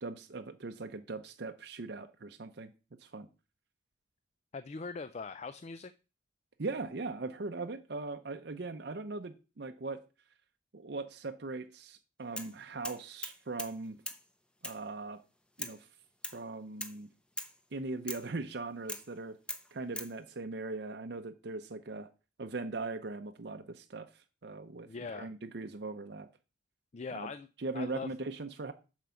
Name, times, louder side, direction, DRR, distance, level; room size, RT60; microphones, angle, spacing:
voice 1, 0.0-2.7 3.0-3.3 6.6-10.0 10.7-14.0 14.6-15.2 15.6-15.9 16.3-17.1 17.7-19.4 19.7-22.1 22.4-26.3 27.1-27.3 27.6-28.7, right 3 dB, 60° right, 7 dB, 0.7 m, -40 dB
voice 2, 4.5-5.9 24.9-25.3 26.9-27.5 27.7-28.1, left 4 dB, 35° left, 12 dB, 0.4 m, -41 dB
sound 1, 12.4-12.6 12.8-13.8 14.1-14.2 14.6-14.8 15.6-15.8 16.2-16.4 16.8-17.0 17.4-17.6 18.1-18.3 18.9-19.1 19.5-20.1, left 1 dB, 5° left, 0.7 m, -41 dB
7.5 x 4.9 x 7.0 m, 0.32 s
head